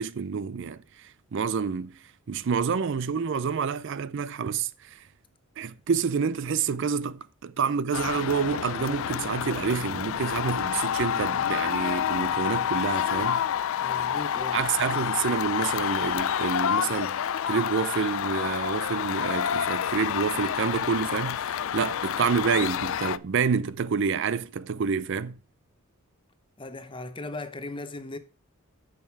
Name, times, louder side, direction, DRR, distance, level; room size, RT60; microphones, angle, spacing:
voice 1, 0.0-2.0 2.3-5.0 5.6-13.4 14.5-25.4, right 6 dB, 55° right, 0.4 m, -28 dB
sound 1, 7.9-23.2, left 9 dB, 65° left, 0.4 m, -28 dB
voice 2, 13.8-14.6 26.6-28.2, left 2 dB, 20° left, 0.8 m, -37 dB
9.2 x 6.4 x 4.5 m
head